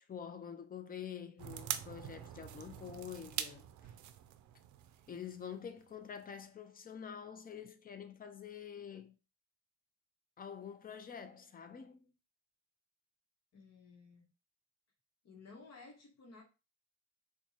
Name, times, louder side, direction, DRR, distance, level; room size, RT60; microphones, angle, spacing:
voice 1, 0.1-3.9 5.1-9.1 10.4-12.1, left 8 dB, 30° left, 0.6 m, -47 dB
sound 1, 1.4-5.9 6.2-6.3, right 10 dB, 75° right, 0.5 m, -44 dB
voice 2, 13.5-14.3 15.2-16.4, left 4 dB, 60° left, 1.0 m, -55 dB
4.3 x 2.3 x 2.8 m
cardioid pair, 90°, 30 cm